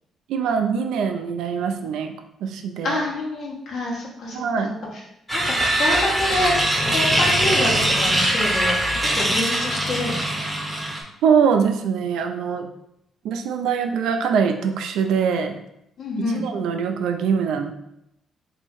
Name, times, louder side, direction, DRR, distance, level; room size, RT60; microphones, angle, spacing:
voice 1, 0.3-2.2 2.4-3.0 4.3-4.7 11.2-12.7 13.2-15.6 16.3-17.7, right 6 dB, 85° right, 5 dB, 0.3 m, -23 dB
voice 2, 2.8-4.7 5.3-6.5 6.9-7.7 8.0-10.2 16.0-16.4, left 2 dB, 65° left, -3 dB, 1.1 m, -27 dB
sound 1, 5.3-11.0, right 1 dB, 5° right, 0.7 m, -22 dB
3.1 x 2.6 x 3.0 m, 0.80 s
cardioid pair, 90°, 0 cm